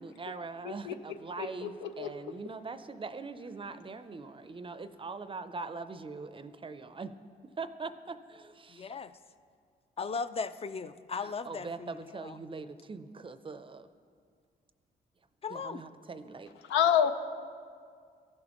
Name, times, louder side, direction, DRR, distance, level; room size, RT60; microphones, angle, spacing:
voice 1, 0.0-7.1 7.6-8.9 11.2-13.9 15.5-16.5, right 4 dB, 30° right, 11 dB, 0.5 m, -42 dB
voice 2, 0.6-0.9 1.4-2.1 16.6-17.1, left 9 dB, 90° left, 9 dB, 0.5 m, -28 dB
voice 3, 8.7-9.1 10.0-12.4 15.4-15.8, left 5 dB, 30° left, 13 dB, 0.4 m, -37 dB
14.5 x 6.3 x 3.0 m, 2.1 s
supercardioid pair, 60°, 18 cm